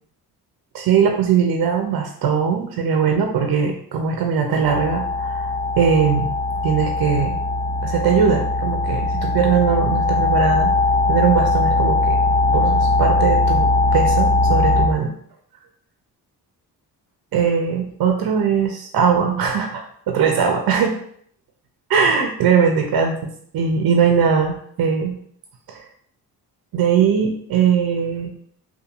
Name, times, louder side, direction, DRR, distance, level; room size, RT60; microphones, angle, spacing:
voice 1, 0.7-5.5 5.8-6.3 6.6-7.4 7.8-10.7 11.1-12.2 12.5-15.1 17.3-20.9 21.9-25.2 25.7-25.8 26.7-28.3, right 6 dB, 60° right, 3 dB, 0.5 m, -20 dB
sound 1, 4.6-14.9, left 2 dB, 20° left, 0.5 m, -20 dB
2.8 x 2.4 x 2.3 m, 0.62 s
supercardioid pair, 50°, 41 cm